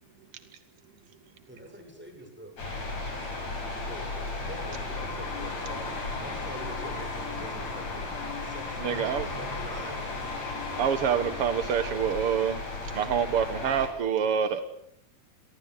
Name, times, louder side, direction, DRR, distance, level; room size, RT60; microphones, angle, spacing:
voice 1, 0.0-1.7 3.0-3.9 10.7-10.8, right 9 dB, 90° right, 10 dB, 4.2 m, -58 dB
voice 2, 1.5-2.5 3.9-4.1 4.4-5.9 6.2-8.1 8.4-10.0, equal, 5° right, 4 dB, 7.5 m, -44 dB
sound 1, 2.6-13.9, left 2 dB, 45° left, 7.8 m, -35 dB
sound 2, 5.0-11.9, left 6 dB, 70° left, 5.5 m, -42 dB
voice 3, 8.8-9.3 10.8-12.6 12.9-14.6, right 8 dB, 55° right, 10 dB, 1.6 m, -26 dB
28.5 x 23.5 x 8.3 m, 0.73 s
omnidirectional pair, 4.3 m